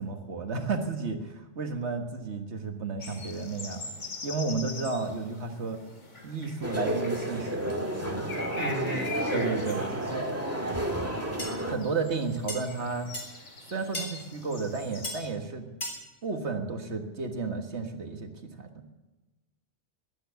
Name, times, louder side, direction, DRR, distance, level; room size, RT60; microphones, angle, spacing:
voice 1, 0.0-5.8 6.2-8.3 8.6-8.7 9.3-10.3 11.7-13.1 13.7-15.7 16.2-18.3 18.6-18.9, right 4 dB, 70° right, 5 dB, 1.8 m, -33 dB
sound 1, 3.0-15.3, left 3 dB, 85° left, 2.7 m, -44 dB
sound 2, 6.6-11.7, right 1 dB, 10° right, 1.7 m, -31 dB
voice 2, 8.5-9.9, equal, 70° left, 1 dB, 3.0 m, -35 dB
sound 3, 11.4-11.5 12.5-12.6 13.1-13.3 13.9-14.1 15.0-15.2 15.8-16.0, left 1 dB, 45° left, 4.0 m, -34 dB
21.0 x 9.3 x 6.9 m, 1.1 s
omnidirectional pair, 1.2 m